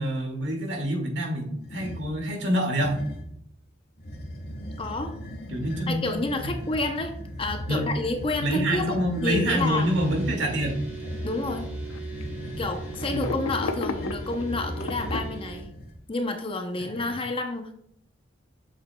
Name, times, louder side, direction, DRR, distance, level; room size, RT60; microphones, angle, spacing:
voice 1, 0.0-3.0 5.5-6.0 6.4-6.5 7.7-7.9 8.4-10.8 13.1-13.3 16.8-17.1, right 1 dB, 55° right, 2 dB, 1.7 m, -26 dB
sound 1, 1.6-2.1 2.7-3.4 4.0-16.0, equal, 50° left, 1.8 m, -37 dB
voice 2, 4.8-5.1 5.9-7.1 7.4-9.9 11.2-11.7 12.6-15.7 16.1-17.7, left 2 dB, 25° left, 6 dB, 0.6 m, -29 dB
sound 2, 8.9-9.0 9.4-9.5 10.3-11.0 11.9-12.2 13.0-15.2, left 3 dB, 85° left, 0.6 m, -33 dB
sound 3, 9.5-15.6, right 5 dB, 10° right, 1.8 m, -42 dB
8.0 x 6.2 x 2.2 m, 0.71 s
head